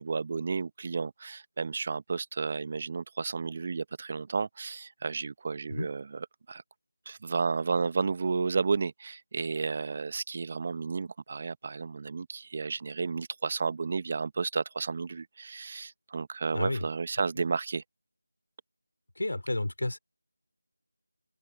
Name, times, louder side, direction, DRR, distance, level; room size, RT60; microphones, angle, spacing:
voice 1, 0.0-6.6 7.1-17.8, right 4 dB, 35° right, 1.2 m, -32 dB
voice 2, 16.5-16.8 19.2-20.0, left 1 dB, 70° left, 5.3 m, -31 dB
open air
figure-of-eight pair, 165°, 0 cm